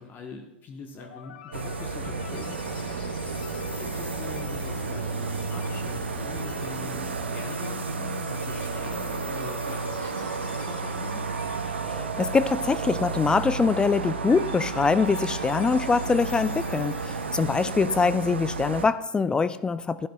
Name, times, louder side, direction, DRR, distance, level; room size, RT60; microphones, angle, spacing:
voice 1, 0.0-11.2, left 5 dB, 35° left, 3 dB, 1.0 m, -43 dB
sound 1, 1.0-17.9, left 8 dB, 65° left, 0.8 m, -46 dB
sound 2, 1.5-18.9, right 4 dB, 85° right, 0.6 m, -32 dB
sound 3, 2.0-7.5, right 4 dB, 20° right, 1.2 m, -44 dB
voice 2, 11.8-20.1, left 4 dB, 15° left, 15 dB, 0.3 m, -24 dB
12.0 x 10.5 x 2.3 m, 0.92 s
hypercardioid pair, 95°, 6 cm